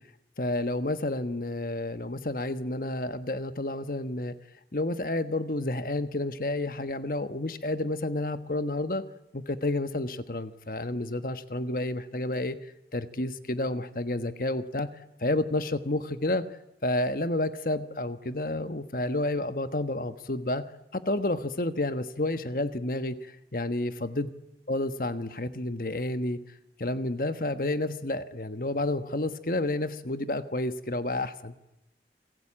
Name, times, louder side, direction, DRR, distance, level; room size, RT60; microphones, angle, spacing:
voice 1, 0.4-4.3 4.7-9.0 9.3-12.6 12.9-14.9 15.2-16.4 16.8-20.6 20.9-24.3 24.7-26.4 26.8-31.5, left 2 dB, 50° left, 11 dB, 1.3 m, -30 dB
29.0 x 20.5 x 8.8 m, 0.90 s
head